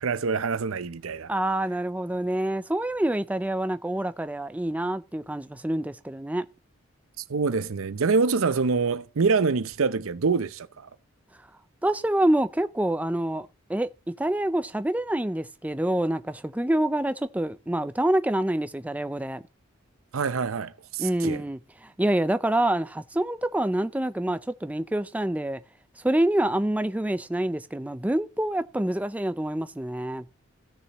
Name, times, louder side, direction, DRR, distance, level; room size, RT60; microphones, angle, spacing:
voice 1, 0.0-1.3 7.3-10.9 20.1-21.4, right 4 dB, 90° right, 0.6 m, -25 dB
voice 2, 1.3-6.5 11.8-13.9 14.2-19.4 21.0-25.6 26.0-30.3, right 1 dB, 5° right, 0.4 m, -26 dB
16.0 x 6.6 x 3.0 m
head